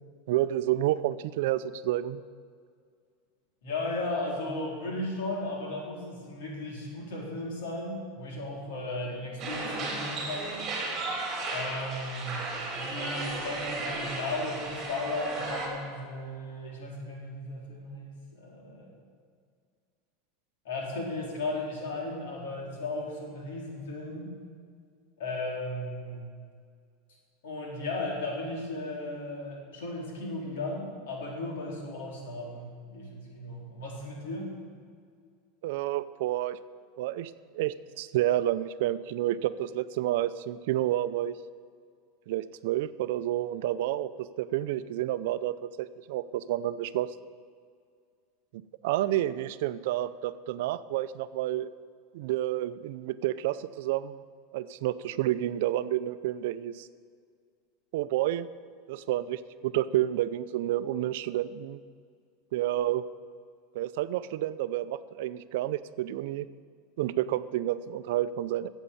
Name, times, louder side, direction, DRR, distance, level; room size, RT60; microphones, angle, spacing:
voice 1, 0.3-2.2 35.6-36.6 37.0-41.4 42.3-47.1 48.8-51.7 52.1-54.2 54.5-56.9 57.9-58.5 58.9-61.8 62.5-63.0 63.7-66.5 67.0-68.7, right 13 dB, 65° right, 14 dB, 0.5 m, -30 dB
voice 2, 3.6-10.6 11.5-12.5 12.7-18.9 20.6-24.3 25.2-26.2 27.4-34.5, left 2 dB, 80° left, -2 dB, 4.1 m, -35 dB
sound 1, 9.4-15.7, right 3 dB, 25° right, 3.2 m, -35 dB
14.5 x 8.2 x 7.0 m, 2.1 s
supercardioid pair, 165°, 0 cm